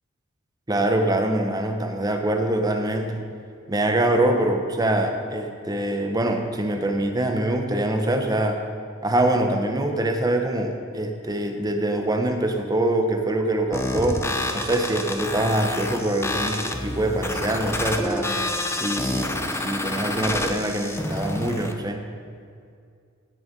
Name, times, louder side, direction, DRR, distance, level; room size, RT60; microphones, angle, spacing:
voice 1, 0.7-3.2 3.7-8.6 9.0-18.3 18.7-22.0, right 1 dB, 20° right, 4 dB, 1.0 m, -24 dB
sound 1, 13.7-21.7, left 1 dB, 15° left, 0.7 m, -28 dB
16.5 x 7.0 x 5.4 m, 2.3 s
head